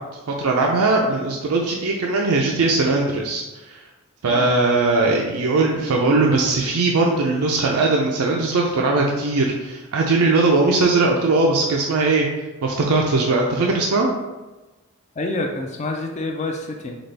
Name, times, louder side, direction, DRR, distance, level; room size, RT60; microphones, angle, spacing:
voice 1, 0.3-3.4 3.7-3.8 4.2-12.3 12.6-14.1, right 3 dB, 80° right, 0 dB, 0.5 m, -19 dB
voice 2, 15.2-17.0, left 2 dB, 30° left, 2 dB, 0.4 m, -27 dB
4.1 x 3.8 x 3.3 m, 1.1 s
head